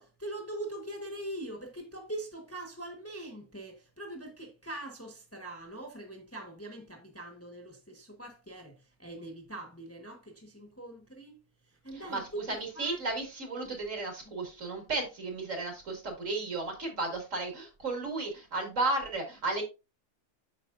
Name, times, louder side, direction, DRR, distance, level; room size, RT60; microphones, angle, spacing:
voice 1, 0.0-11.4 11.7-12.5 12.7-13.0 14.2-14.3, right 1 dB, 10° left, 1.2 m, -42 dB
voice 2, 12.5-19.6, right 2 dB, 60° right, 2.7 m, -34 dB
8.4 x 6.2 x 2.5 m
omnidirectional pair, 1.5 m